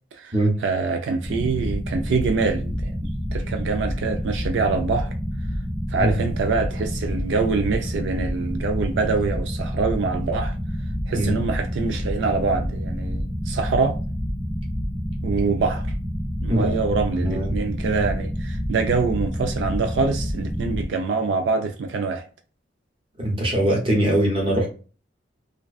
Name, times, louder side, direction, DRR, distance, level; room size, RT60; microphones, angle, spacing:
voice 1, 0.6-5.1 5.9-10.5 11.1-14.0 15.2-15.9 16.4-22.2, right 4 dB, 80° right, 0.3 m, -25 dB
sound 1, 1.2-20.9, equal, 5° left, 0.4 m, -28 dB
voice 2, 17.2-17.6 23.2-24.7, right 1 dB, 30° right, 0.8 m, -21 dB
2.4 x 2.2 x 2.3 m
head